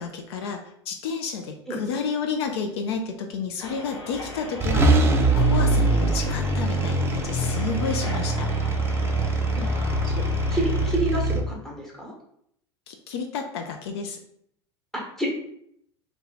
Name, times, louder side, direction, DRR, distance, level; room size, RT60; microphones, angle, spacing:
voice 1, 0.0-8.5 12.9-14.2, left 5 dB, 65° left, 4 dB, 0.4 m, -31 dB
sound 1, 3.6-10.9, left 2 dB, 80° left, 1.0 m, -38 dB
sound 2, 4.1-4.3 4.6-11.4, right 2 dB, 15° right, 0.4 m, -23 dB
voice 2, 10.5-12.1 14.9-15.3, right 2 dB, ahead, -1 dB, 1.1 m, -29 dB
2.7 x 2.2 x 4.0 m, 0.70 s
hypercardioid pair, 85°, 15 cm